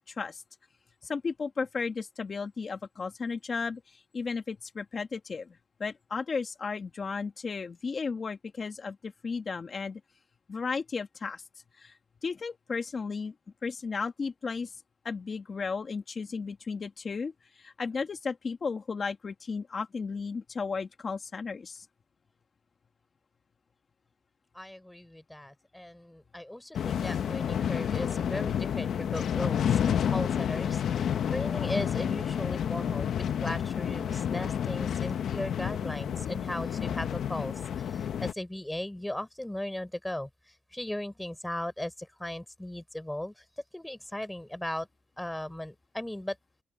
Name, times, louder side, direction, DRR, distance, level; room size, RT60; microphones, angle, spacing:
voice 1, 0.1-0.4 1.0-10.0 10.5-11.4 11.8-11.9 12.2-13.3 13.6-14.7 15.0-21.9, left 5 dB, 35° left, 1.9 m, -34 dB
voice 2, 24.5-43.4 43.7-44.9 45.2-46.4, left 1 dB, 5° left, 4.2 m, -37 dB
sound 1, 26.7-38.3, left 9 dB, 60° left, 0.8 m, -30 dB
open air
cardioid pair, 125°, 0 cm